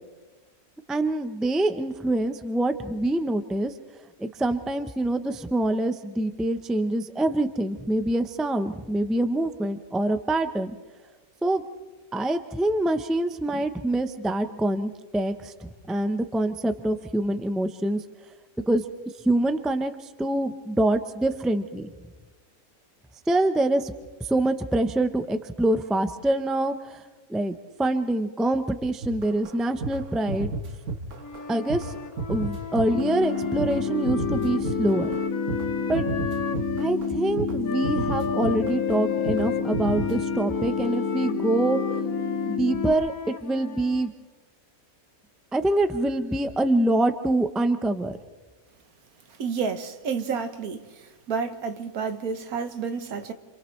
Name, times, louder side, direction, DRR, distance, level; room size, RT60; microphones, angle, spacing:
voice 1, 0.9-3.7 4.2-10.7 11.4-11.6 12.1-18.0 18.7-18.8 19.2-19.9 20.2-21.9 23.3-23.9 24.3-27.0 27.3-30.5 31.5-31.9 32.3-35.1 35.9-36.0 36.8-41.8 42.5-44.1 45.5-48.2, right 1 dB, ahead, 0.5 m, -25 dB
sound 1, 29.0-35.7 35.9-37.1 37.4-37.6 37.8-39.0 39.3-39.5 39.7-40.2, right 3 dB, 55° right, 1.5 m, -32 dB
Wind instrument woodwind instrument, 31.2-36.9 37.6-44.1, left 7 dB, 70° left, 1.4 m, -35 dB
sound 2, 32.9-42.9, left 5 dB, 45° left, 2.1 m, -29 dB
voice 2, 49.4-50.8 51.3-53.3, right 5 dB, 75° right, 1.6 m, -30 dB
29.5 x 27.5 x 3.2 m
omnidirectional pair, 1.6 m